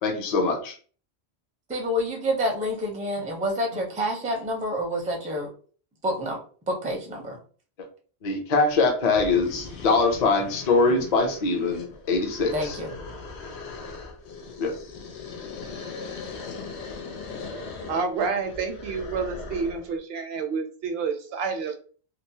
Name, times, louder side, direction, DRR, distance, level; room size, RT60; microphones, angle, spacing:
voice 1, 0.0-0.7 8.2-12.8 14.6-14.7, left 3 dB, 45° left, 3 dB, 0.6 m, -23 dB
voice 2, 1.7-5.5 6.0-6.4 6.7-7.4 12.5-12.9, equal, 10° right, 1 dB, 0.4 m, -28 dB
sound 1, 8.7-8.8 9.1-19.9, left 4 dB, 90° left, 0.9 m, -39 dB
voice 3, 17.9-21.8, right 5 dB, 70° right, 5 dB, 0.8 m, -29 dB
2.9 x 2.0 x 2.7 m, 0.41 s
omnidirectional pair, 1.1 m